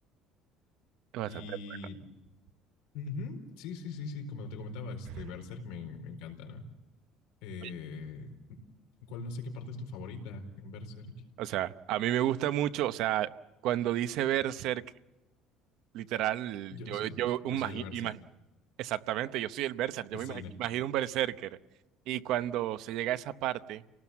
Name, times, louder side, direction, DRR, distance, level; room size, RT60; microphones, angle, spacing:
voice 1, 1.3-2.0 2.9-6.7 7.4-8.6 9.1-11.1 16.7-18.1 20.1-20.5, left 4 dB, 90° left, 4 dB, 4.4 m, -41 dB
voice 2, 11.4-13.3 13.6-14.8 15.9-18.2 18.8-21.6 22.1-23.8, right 13 dB, 55° right, 12 dB, 0.8 m, -31 dB
29.5 x 18.5 x 7.2 m, 1.0 s
cardioid pair, 175°, 0 cm